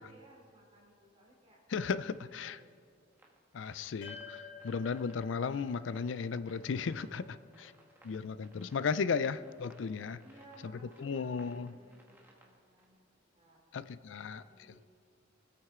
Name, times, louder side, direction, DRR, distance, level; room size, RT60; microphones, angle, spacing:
voice 1, 0.0-1.6 2.1-3.1 4.5-4.6 7.0-8.0 10.2-13.0 13.3-14.9, right 1 dB, 30° right, -3 dB, 3.2 m, -61 dB
voice 2, 1.7-2.6 3.5-7.7 8.0-10.2 10.6-10.7 11.0-11.7 13.7-14.4, left 5 dB, 75° left, 15 dB, 0.4 m, -35 dB
sound 1, 3.1-12.9, right 1 dB, 10° right, 1.5 m, -63 dB
sound 2, 4.0-8.5, left 5 dB, 45° left, 3.0 m, -52 dB
23.5 x 8.7 x 3.7 m, 2.1 s
head